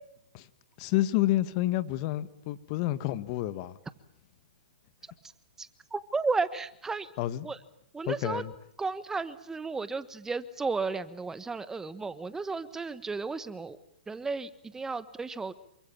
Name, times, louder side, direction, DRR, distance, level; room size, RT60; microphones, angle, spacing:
voice 1, 0.8-3.8 7.2-7.5 8.1-8.5, left 15 dB, 40° left, 14 dB, 1.8 m, -29 dB
voice 2, 5.6-7.1 7.4-7.6 7.9-8.4 8.8-13.8 14.1-15.5, right 4 dB, 10° right, 14 dB, 1.4 m, -33 dB
28.0 x 24.0 x 7.3 m, 0.71 s
hypercardioid pair, 135°, 5 cm